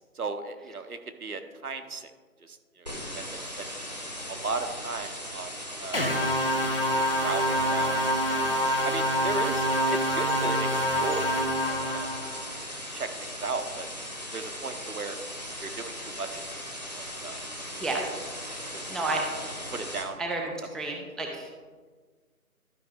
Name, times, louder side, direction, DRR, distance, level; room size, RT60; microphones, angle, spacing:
voice 1, 0.1-2.1 2.4-3.2 3.6-3.7 4.3-5.5 5.8-6.1 6.9-8.0 8.3-8.5 8.8-9.6 9.9-11.3 11.7-12.1 12.5-12.6 12.9-13.1 13.4-13.9 14.3-15.2 15.6-16.4 17.0-17.4 18.9-19.0 19.7-20.2, right 4 dB, 75° right, 7 dB, 1.0 m, -36 dB
sound 1, 2.9-20.0, equal, 30° right, 1.0 m, -38 dB
sound 2, 5.9-12.4, equal, 40° left, 0.8 m, -26 dB
voice 2, 18.9-19.2 20.2-21.5, right 2 dB, ahead, 0 dB, 0.5 m, -31 dB
12.0 x 5.1 x 3.6 m, 1.4 s
figure-of-eight pair, 175°, 44 cm